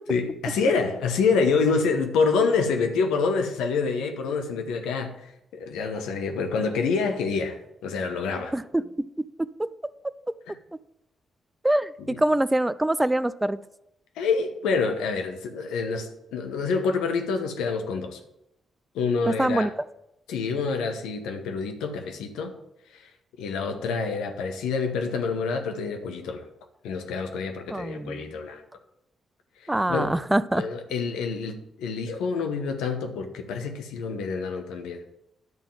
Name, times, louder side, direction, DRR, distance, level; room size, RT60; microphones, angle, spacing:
voice 1, 0.1-8.5 10.5-10.6 12.1-12.2 14.2-18.2 18.9-19.7 20.3-22.5 22.9-23.1 23.4-26.4 26.8-28.6 29.6-30.1 30.5-35.0, left 4 dB, 85° left, 5 dB, 1.0 m, -27 dB
voice 2, 8.5-9.1 9.4-9.7 11.6-13.6 19.4-19.7 27.7-28.3 29.7-30.7, right 1 dB, 15° right, 16 dB, 0.4 m, -24 dB
10.5 x 3.7 x 7.4 m, 0.86 s
hypercardioid pair, 45°, 0 cm